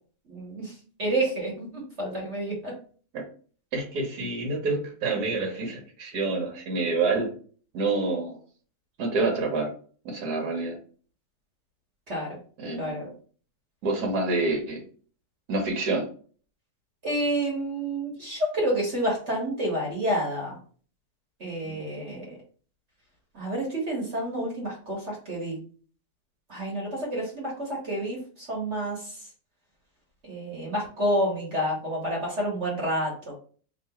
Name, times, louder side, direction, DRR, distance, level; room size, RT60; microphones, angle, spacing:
voice 1, 0.3-0.7 1.0-2.7 12.1-12.4 12.8-13.1 17.0-20.6 21.4-22.3 23.3-25.6 26.5-28.2 28.5-29.1 30.3-33.3, right 1 dB, 45° right, -3 dB, 1.5 m, -29 dB
voice 2, 3.7-7.3 7.7-8.4 9.0-9.7 10.0-10.8 12.6-13.1 13.8-14.8 15.5-16.0 21.6-21.8, right 3 dB, 75° right, 2 dB, 1.5 m, -27 dB
3.0 x 2.9 x 4.2 m, 0.42 s
omnidirectional pair, 1.7 m